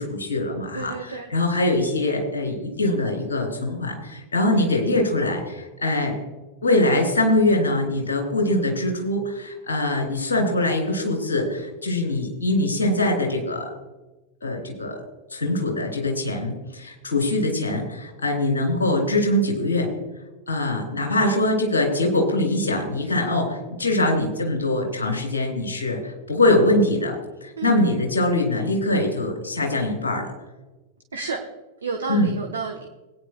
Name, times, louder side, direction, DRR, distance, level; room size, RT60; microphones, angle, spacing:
voice 1, 0.0-6.1 6.6-13.7 14.4-15.0 15.3-19.9 20.5-27.2 27.4-30.3 32.1-32.3, left 1 dB, 70° left, 2 dB, 3.2 m, -23 dB
voice 2, 0.7-1.3 4.5-4.8 27.6-27.8 31.1-31.4 31.8-32.9, right 4 dB, 70° right, 3 dB, 1.1 m, -31 dB
20.5 x 9.7 x 2.2 m, 1.1 s
figure-of-eight pair, 90°, 0 cm